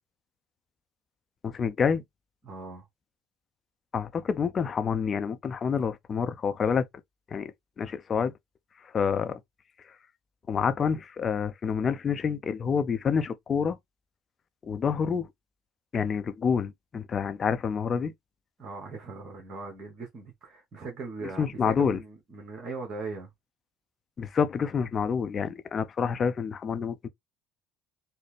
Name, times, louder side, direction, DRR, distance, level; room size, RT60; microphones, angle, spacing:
voice 1, 1.4-2.0 3.9-6.8 7.3-8.3 8.9-9.4 10.5-13.8 14.6-15.3 15.9-18.1 21.4-22.0 24.2-27.1, left 6 dB, 35° left, 0.6 m, -28 dB
voice 2, 2.4-2.9 18.6-23.3, right 3 dB, 40° right, 1.3 m, -39 dB
4.0 x 2.1 x 3.2 m
hypercardioid pair, 65°, 0 cm